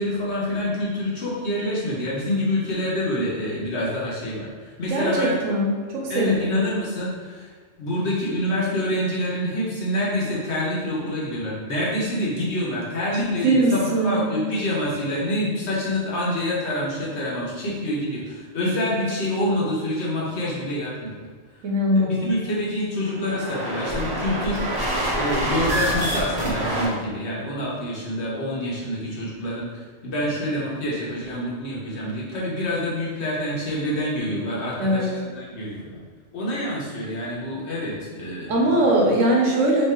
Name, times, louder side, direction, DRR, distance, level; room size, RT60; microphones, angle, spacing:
voice 1, 0.0-5.4 6.1-7.5 7.8-21.1 21.9-36.0 36.3-38.8, left 1 dB, 60° left, -6 dB, 1.3 m, -27 dB
voice 2, 4.9-6.3 13.2-14.3 21.6-22.4 34.8-35.1 38.5-39.9, right 1 dB, 80° right, -2 dB, 1.2 m, -21 dB
sound 1, 23.1-26.9, right 1 dB, 25° right, 0.7 m, -26 dB
3.2 x 2.7 x 4.3 m, 1.5 s
omnidirectional pair, 1.3 m